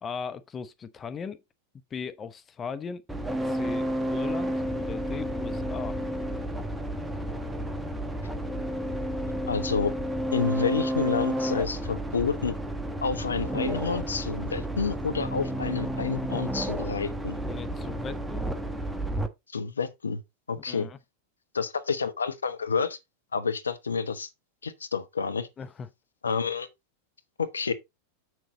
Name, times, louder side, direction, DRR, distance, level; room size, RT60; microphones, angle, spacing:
voice 1, 0.0-1.4 1.9-3.0 3.4-6.0 17.5-18.4 20.6-21.0 25.6-25.9, left 6 dB, 20° left, 0.7 m, -38 dB
sound 1, 3.1-19.3, right 1 dB, 5° right, 1.2 m, -31 dB
voice 2, 9.5-9.9 10.3-12.6 13.0-17.4 19.5-20.2 20.5-20.9 21.5-23.0 23.3-24.3 24.6-25.5 26.2-26.7 27.4-27.7, left 5 dB, 75° left, 1.0 m, -29 dB
7.8 x 6.5 x 3.9 m
figure-of-eight pair, 90°, 0 cm